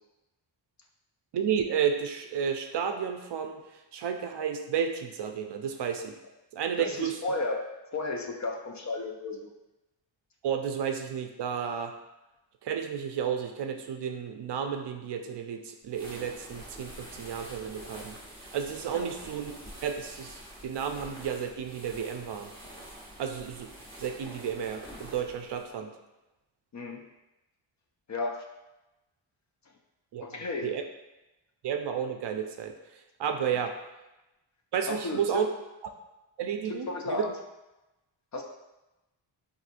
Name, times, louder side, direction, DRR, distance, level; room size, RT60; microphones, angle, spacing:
voice 1, 1.3-3.6 3.9-6.2 6.5-7.1 10.4-11.9 12.6-18.2 18.5-19.5 19.8-20.4 20.6-22.5 23.2-23.7 24.0-25.9 30.1-30.2 30.6-30.8 31.6-32.7 33.2-33.7 34.7-35.5 36.4-37.3, right 7 dB, 60° right, 5 dB, 0.5 m, -32 dB
voice 2, 6.8-9.5 18.9-19.1 26.7-27.0 28.1-28.4 30.2-30.8 34.9-35.5 36.7-37.4 38.3-38.4, left 3 dB, 40° left, 2 dB, 0.5 m, -34 dB
sound 1, 15.9-25.7, equal, 10° left, 0.9 m, -47 dB
4.1 x 2.6 x 2.5 m, 1.0 s
cardioid pair, 70°, 48 cm